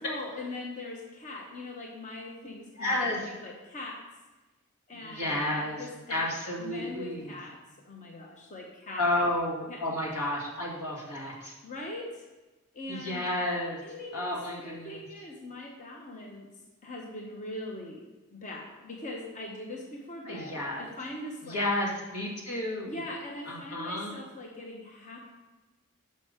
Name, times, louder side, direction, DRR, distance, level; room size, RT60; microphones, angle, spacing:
voice 1, 0.0-3.0 3.2-4.0 4.9-6.2 6.6-9.1 9.7-9.8 11.6-12.2 12.7-13.3 13.8-16.5 16.8-18.0 18.3-21.6 22.8-25.3, left 2 dB, 35° left, -1 dB, 0.9 m, -41 dB
voice 2, 2.8-3.3 5.0-5.8 6.1-7.3 9.0-11.5 12.9-13.8 14.1-15.0 20.3-20.9 21.4-22.9 23.5-24.2, left 1 dB, 80° left, -4 dB, 2.0 m, -31 dB
5.4 x 5.1 x 6.5 m, 1.2 s
head